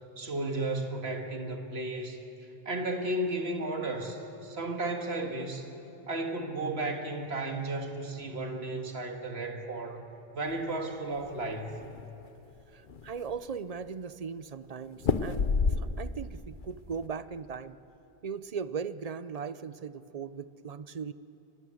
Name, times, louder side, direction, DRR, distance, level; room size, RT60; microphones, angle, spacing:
voice 1, 0.2-2.2 2.7-5.7 6.1-10.0 10.3-11.8, right 2 dB, 85° right, 3 dB, 2.1 m, -34 dB
sound 1, 11.1-12.0 12.5-12.6 12.9-13.5 15.0-16.3 16.6-17.1, left 5 dB, 55° left, 1.0 m, -29 dB
voice 2, 12.7-17.8 18.2-21.1, right 6 dB, 45° right, 14 dB, 0.6 m, -38 dB
24.0 x 20.5 x 7.7 m, 3.0 s
omnidirectional pair, 1.0 m